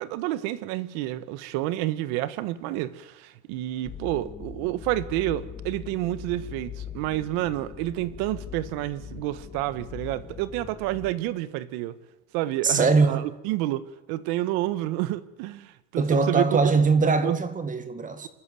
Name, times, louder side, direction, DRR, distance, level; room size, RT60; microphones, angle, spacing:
voice 1, 0.0-12.0 12.3-16.6 17.2-17.4, right 15 dB, 65° right, 1.6 m, -29 dB
sound 1, 3.8-11.1, left 8 dB, 20° left, 2.7 m, -41 dB
voice 2, 12.6-13.3 16.0-18.3, right 4 dB, 20° right, 1.8 m, -22 dB
26.0 x 13.5 x 9.3 m
cardioid pair, 145°, 40 cm